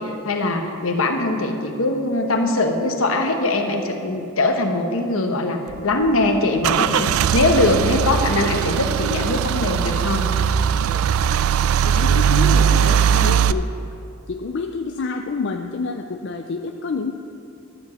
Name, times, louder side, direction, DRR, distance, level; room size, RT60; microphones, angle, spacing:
voice 1, 0.0-10.3, left 2 dB, 75° left, 4 dB, 1.0 m, -21 dB
Car / Engine starting / Idling, 5.7-13.5, right 8 dB, 80° right, 0.3 m, -19 dB
voice 2, 11.8-13.7 14.3-17.1, left 4 dB, 55° left, 5 dB, 0.4 m, -28 dB
12.0 x 4.9 x 6.9 m, 2.6 s
head